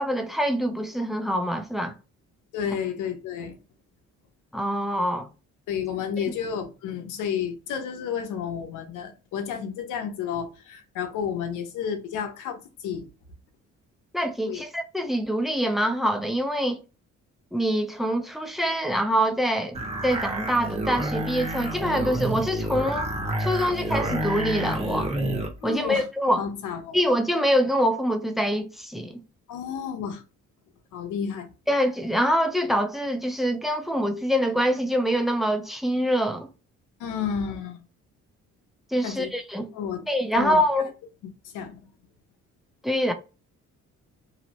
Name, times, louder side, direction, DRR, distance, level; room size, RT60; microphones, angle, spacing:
voice 1, 0.0-1.9 4.5-5.3 14.1-16.8 17.5-23.1 23.4-25.1 25.6-26.4 26.9-29.2 31.7-36.5 38.9-39.7 40.1-40.9 42.8-43.1, equal, ahead, 0.4 m, -25 dB
voice 2, 2.5-3.6 5.7-13.1 14.4-14.6 25.6-26.1 26.4-27.0 29.5-30.2 30.9-31.5 37.0-37.8 39.0-39.3 39.7-40.1 40.3-40.6 41.4-41.8, left 7 dB, 90° left, 0.7 m, -31 dB
sound 1, 19.7-25.5, right 1 dB, 20° right, 0.9 m, -29 dB
2.8 x 2.0 x 2.8 m
cardioid pair, 90°, 30 cm